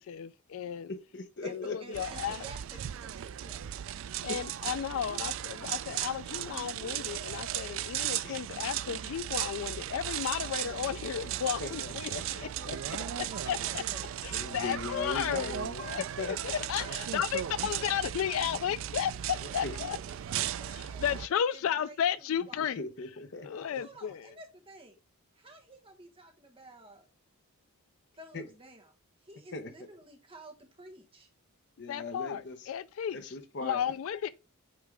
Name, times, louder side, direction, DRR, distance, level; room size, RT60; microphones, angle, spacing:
voice 1, 0.1-0.9 1.5-2.4 4.2-12.4 13.5-13.8 14.2-20.0 21.0-22.8 23.4-24.2 31.9-33.3 33.6-34.3, left 9 dB, 65° left, 0.3 m, -33 dB
voice 2, 0.9-2.0 4.3-4.4 5.6-5.7 8.2-8.4 11.6-13.0 14.3-16.9 18.5-18.6 19.4-19.8 22.6-23.8 28.3-28.4 29.5-29.7 31.8-32.7 33.1-33.8, left 3 dB, 50° left, 0.9 m, -40 dB
voice 3, 1.4-3.6 12.5-14.1 16.8-18.3 19.2-22.6 23.7-25.0 25.3-27.1 28.2-28.9 29.2-31.3, right 1 dB, 25° right, 1.3 m, -52 dB
sound 1, 1.9-21.3, right 11 dB, 60° right, 0.3 m, -36 dB
8.6 x 3.6 x 3.3 m
head